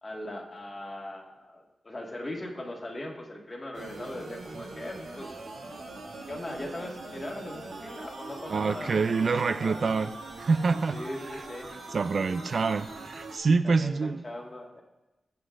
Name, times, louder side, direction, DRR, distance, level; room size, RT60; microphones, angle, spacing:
voice 1, 0.0-5.3 6.3-9.2 9.5-10.1 10.9-11.7 13.6-14.8, left 1 dB, 30° left, -1 dB, 1.8 m, -39 dB
sound 1, 3.7-13.4, right 2 dB, 80° right, 2.1 m, -42 dB
voice 2, 8.5-10.1 10.4-11.4 11.9-14.2, right 4 dB, 55° right, 12 dB, 0.4 m, -26 dB
20.0 x 8.1 x 2.5 m, 1.0 s
wide cardioid pair, 110°, 0 cm